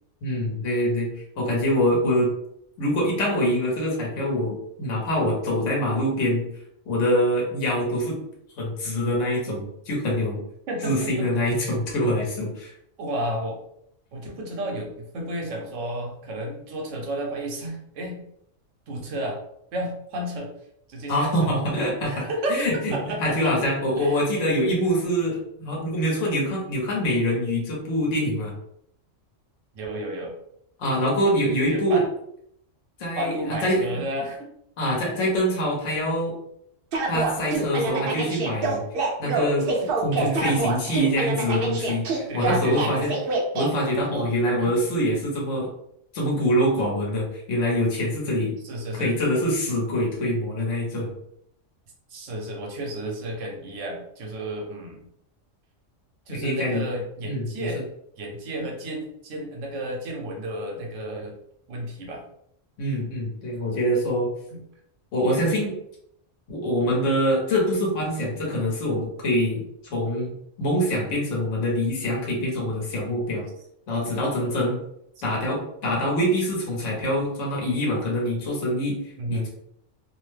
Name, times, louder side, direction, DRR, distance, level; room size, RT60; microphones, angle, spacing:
voice 1, 0.2-1.1 1.4-2.3 2.8-6.4 6.9-8.1 8.6-10.4 10.8-12.7 21.1-22.9 23.2-28.5 30.8-32.0 33.0-34.0 34.8-36.4 37.1-38.8 39.2-39.7 40.0-43.1 43.5-45.7 46.1-48.5 49.0-51.1 56.3-56.9 57.2-57.7 62.8-64.3 65.1-65.7 66.5-69.6 69.9-70.3 70.6-73.5 73.9-74.8 75.2-79.0 79.3-79.5, equal, 70° left, -3 dB, 1.2 m, -24 dB
voice 2, 10.7-11.3 13.0-13.6 14.1-18.2 18.9-19.4 19.7-20.5 20.9-21.5 22.0-23.6 24.0-24.2 29.7-30.3 31.7-32.1 33.1-34.5 38.2-38.3 40.2-40.6 42.3-43.1 44.0-44.8 48.6-49.1 52.1-55.0 56.3-57.9 58.2-61.3 61.7-62.2 64.5-64.6 79.2-79.5, right 1 dB, 75° right, 0 dB, 1.1 m, -32 dB
sound 1, 36.9-43.7, right 3 dB, 55° right, 0.7 m, -26 dB
2.8 x 2.0 x 3.2 m, 0.73 s
omnidirectional pair, 1.3 m